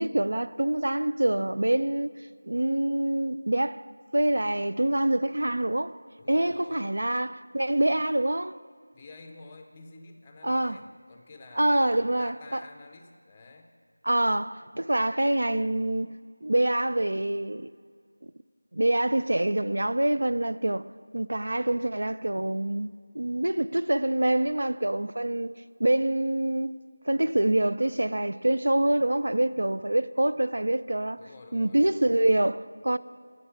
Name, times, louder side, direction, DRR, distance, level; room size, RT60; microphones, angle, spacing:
voice 1, 0.0-2.2 2.4-3.9 4.1-6.0 6.3-8.6 10.4-10.8 11.6-12.6 14.0-16.1 16.4-17.7 18.7-22.9 23.1-25.5 25.8-26.7 27.1-31.2 31.5-33.0, right 1 dB, 70° right, 0.4 m, -26 dB
voice 2, 6.2-6.9 8.9-13.8 31.2-32.1, left 3 dB, 10° left, 0.5 m, -49 dB
11.5 x 8.0 x 8.5 m
figure-of-eight pair, 175°, 0 cm